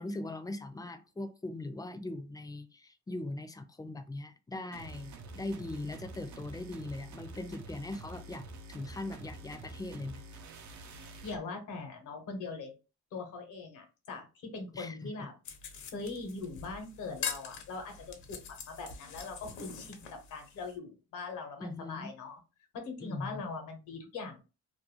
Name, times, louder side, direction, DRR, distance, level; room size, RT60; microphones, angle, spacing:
voice 1, 0.0-10.2 14.7-15.3 21.6-22.1 23.0-23.4, left 2 dB, 10° left, 0.4 m, -40 dB
sound 1, 4.7-11.4, right 2 dB, 70° right, 0.6 m, -47 dB
voice 2, 10.9-12.7 13.1-15.3 15.9-22.4 22.7-24.4, left 4 dB, 90° left, 0.9 m, -41 dB
sound 2, 15.4-20.7, left 7 dB, 70° left, 0.6 m, -43 dB
2.5 x 2.2 x 2.9 m
cardioid pair, 90°, 30 cm